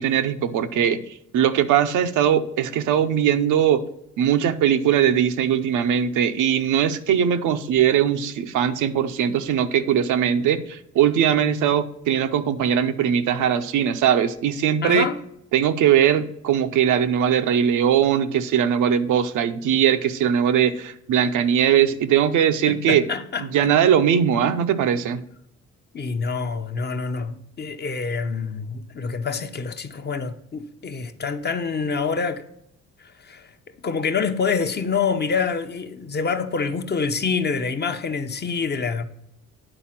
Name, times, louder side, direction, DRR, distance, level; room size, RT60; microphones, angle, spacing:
voice 1, 0.0-3.8 4.2-15.1 15.5-23.0 23.4-25.2, right 9 dB, 80° right, 0.7 m, -20 dB
voice 2, 14.8-15.2 22.7-23.7 25.9-32.4 33.0-33.5 33.8-39.0, left 5 dB, 35° left, 0.7 m, -26 dB
8.9 x 4.1 x 5.7 m
cardioid pair, 90°, 30 cm